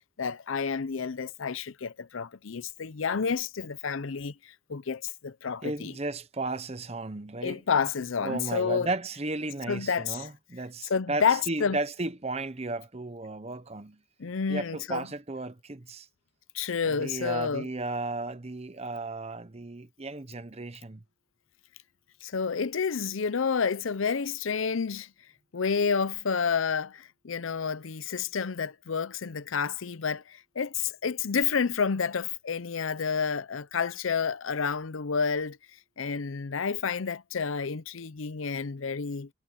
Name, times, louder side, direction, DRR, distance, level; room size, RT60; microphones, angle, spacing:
voice 1, 0.2-5.9 7.4-8.9 9.7-10.3 10.9-11.8 14.2-15.1 16.5-17.7 22.2-25.1 25.5-35.6 36.0-39.3, left 6 dB, 75° left, 0.6 m, -29 dB
voice 2, 5.6-7.6 8.2-14.0 14.5-16.1 16.8-21.0, right 2 dB, 30° right, 0.9 m, -34 dB
head